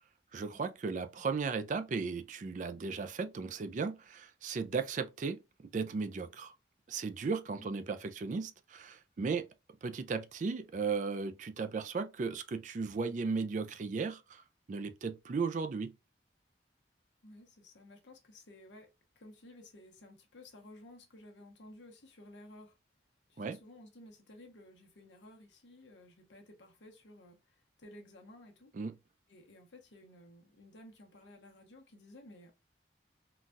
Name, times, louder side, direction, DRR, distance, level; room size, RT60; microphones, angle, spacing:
voice 1, 0.3-5.4 5.7-6.5 6.9-9.5 9.8-14.4 14.7-15.9 23.4-23.6 28.7-29.0, right 4 dB, 45° right, 0.3 m, -36 dB
voice 2, 7.6-7.9 17.2-18.9 19.2-22.8 23.3-28.7 29.3-32.5, left 1 dB, 80° left, 0.9 m, -55 dB
3.9 x 2.3 x 2.5 m
head